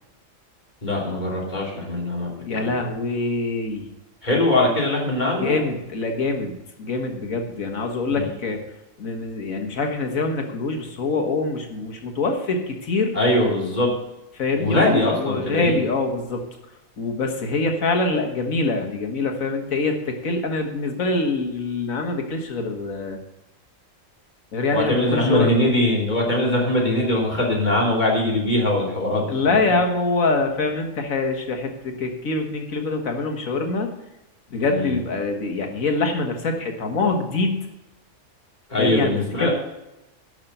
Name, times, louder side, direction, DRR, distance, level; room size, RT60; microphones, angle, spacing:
voice 1, 0.8-2.8 4.2-5.6 8.1-8.2 13.1-13.9 14.6-15.8 24.7-29.3 34.6-35.0 38.7-39.5, left 1 dB, 35° left, -3 dB, 3.1 m, -22 dB
voice 2, 2.5-3.9 5.4-6.5 6.8-8.6 9.0-13.2 14.4-16.4 17.0-23.2 24.5-25.7 29.3-33.9 34.5-37.7 38.8-39.5, left 3 dB, 90° left, 4 dB, 1.9 m, -24 dB
11.5 x 6.2 x 6.8 m, 0.94 s
omnidirectional pair, 1.4 m